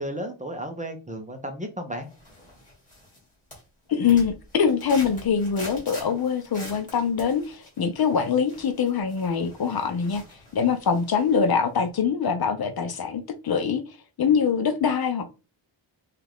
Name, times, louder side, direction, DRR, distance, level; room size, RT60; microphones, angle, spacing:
voice 1, 0.0-2.1, equal, 15° right, 0.6 m, -33 dB
sound 1, 2.1-3.2 3.5-11.5 11.8-11.9, left 1 dB, 15° left, 2.3 m, -45 dB
voice 2, 3.9-10.2 10.5-13.8 14.2-15.3, left 6 dB, 50° left, 0.7 m, -24 dB
5.7 x 2.5 x 3.5 m
wide cardioid pair, 180°, 47 cm